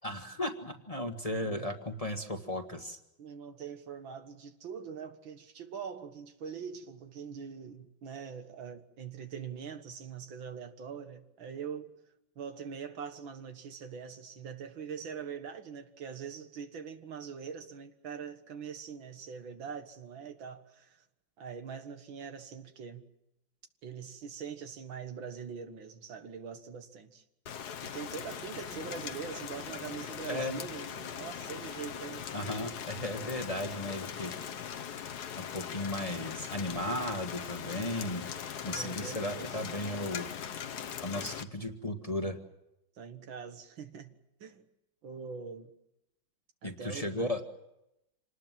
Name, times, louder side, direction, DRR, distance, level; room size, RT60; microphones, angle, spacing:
voice 1, 0.0-3.0 30.3-30.6 32.3-34.3 35.4-38.2 38.6-40.3 41.0-42.4 46.6-47.4, left 1 dB, 20° left, 1.4 m, -35 dB
voice 2, 3.2-11.9 12.4-21.0 21.4-23.0 23.8-27.2 27.8-32.5 35.8-35.9 38.7-39.6 41.1-41.3 43.0-44.1 44.4-44.6 45.0-45.7 46.6-47.3, right 6 dB, 90° right, 2.4 m, -43 dB
Rain, 27.5-41.4, left 8 dB, 60° left, 1.5 m, -40 dB
27.0 x 19.5 x 7.5 m
omnidirectional pair, 2.1 m